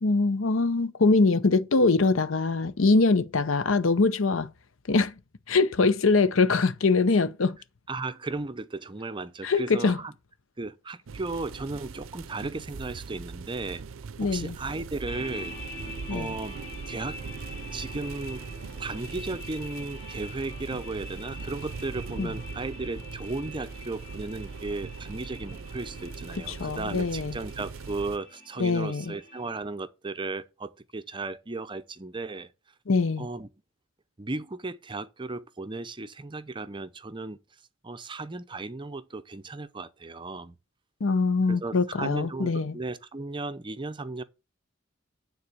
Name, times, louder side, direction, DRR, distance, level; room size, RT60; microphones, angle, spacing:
voice 1, 0.0-4.5 4.9-5.1 5.5-7.6 9.4-10.0 14.2-14.6 16.1-16.3 22.2-22.3 26.6-27.3 28.6-29.1 32.9-33.3 41.0-42.7, left 3 dB, 75° left, 0.7 m, -23 dB
voice 2, 7.9-10.1 10.6-13.8 14.2-15.8 16.1-16.6 16.9-17.2 17.5-18.5 18.8-32.5 33.2-33.5 34.2-37.4 37.8-40.6 41.5-44.2, right 3 dB, 25° right, 0.6 m, -35 dB
sound 1, 11.1-28.2, right 5 dB, 75° right, 0.5 m, -40 dB
sound 2, 15.1-29.6, left 1 dB, 30° left, 2.1 m, -45 dB
9.6 x 4.0 x 6.8 m
head